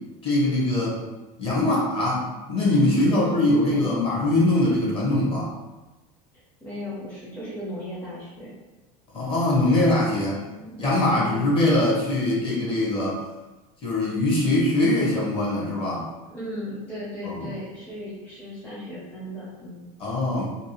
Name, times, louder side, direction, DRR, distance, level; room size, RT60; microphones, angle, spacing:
voice 1, 0.2-1.0 1.4-5.5 9.1-10.4 10.8-13.2 13.8-16.1 17.2-17.5 20.0-20.5, left 1 dB, 30° left, -4 dB, 0.9 m, -22 dB
voice 2, 3.1-3.9 6.6-8.5 10.5-11.6 16.3-19.8, left 1 dB, 10° left, -8 dB, 0.6 m, -36 dB
2.6 x 2.3 x 2.9 m, 1.1 s
supercardioid pair, 135°, 19 cm